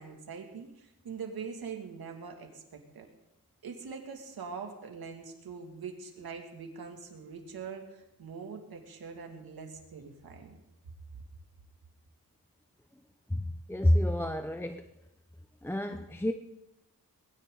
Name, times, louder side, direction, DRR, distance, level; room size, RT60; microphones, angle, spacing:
voice 1, 0.0-3.1 3.6-10.6, right 5 dB, 90° right, 2 dB, 2.6 m, -43 dB
voice 2, 13.3-14.9 15.6-16.3, left 1 dB, 5° left, 7 dB, 0.7 m, -28 dB
20.5 x 16.5 x 4.0 m, 0.90 s
wide cardioid pair, 100°, 35 cm